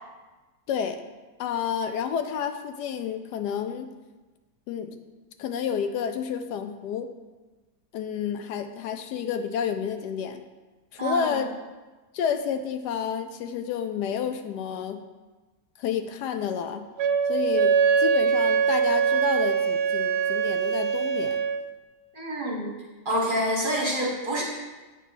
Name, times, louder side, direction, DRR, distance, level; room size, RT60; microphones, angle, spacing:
voice 1, 0.7-1.0 1.4-3.9 4.7-5.0 5.4-7.1 7.9-10.4 10.9-11.5 12.1-15.0 15.8-16.9 17.3-21.4, left 7 dB, 75° left, 8 dB, 1.1 m, -30 dB
voice 2, 11.0-11.4 22.1-22.7 23.0-24.4, equal, 35° right, -2 dB, 1.1 m, -27 dB
Wind instrument woodwind instrument, 17.0-21.6, right 6 dB, 75° right, 1.1 m, -23 dB
8.3 x 4.2 x 5.5 m, 1.2 s
omnidirectional pair, 1.8 m